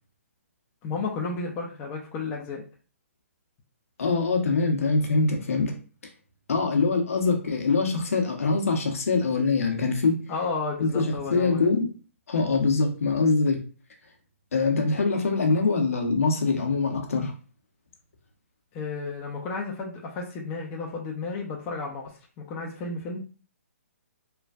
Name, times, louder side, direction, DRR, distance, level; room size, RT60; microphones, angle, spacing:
voice 1, 0.8-2.6 10.3-11.7 18.7-22.1 22.5-23.2, left 4 dB, 25° left, -1 dB, 0.5 m, -32 dB
voice 2, 4.0-5.7 6.5-10.2 10.8-11.9 12.3-13.6 14.5-17.3, left 4 dB, 70° left, 2 dB, 0.8 m, -23 dB
3.2 x 2.4 x 2.3 m, 0.37 s
hypercardioid pair, 140°, 8 cm